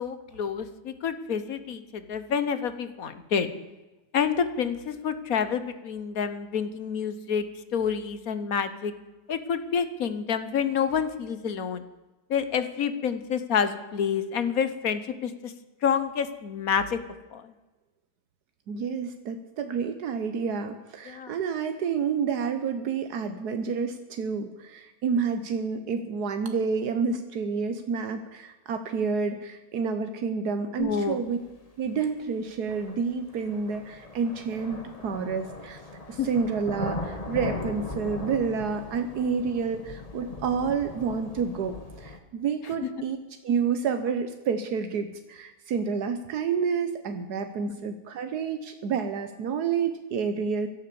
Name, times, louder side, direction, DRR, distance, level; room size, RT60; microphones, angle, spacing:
voice 1, 0.0-3.5 4.1-8.9 9.3-11.8 12.3-15.5 15.8-17.0 17.3-17.5 21.1-21.3 30.8-31.2 36.2-36.3 42.8-42.9, left 7 dB, 65° left, 12 dB, 1.5 m, -28 dB
voice 2, 18.7-31.4 31.8-35.8 36.1-43.2 43.4-50.7, right 6 dB, 85° right, 8 dB, 1.5 m, -29 dB
sound 1, 31.6-31.7 32.7-42.2, left 2 dB, 25° left, 1.4 m, -39 dB
17.0 x 11.5 x 6.9 m, 1.1 s
omnidirectional pair, 1.7 m